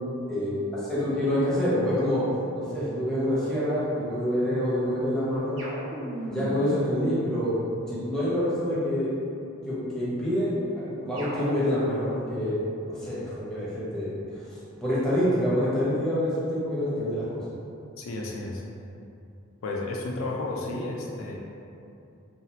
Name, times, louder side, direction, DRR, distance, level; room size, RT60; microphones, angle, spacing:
voice 1, 0.3-2.2 2.5-5.6 6.3-7.5 7.9-9.1 9.6-14.4 14.8-17.4, equal, 5° left, -10 dB, 0.8 m, -27 dB
sound 1, 5.6-8.1 11.1-12.2, right 1 dB, 80° right, 0.7 m, -37 dB
voice 2, 18.0-18.6 19.6-21.3, left 2 dB, 75° left, -1 dB, 0.4 m, -32 dB
2.7 x 2.4 x 2.9 m, 2.6 s
head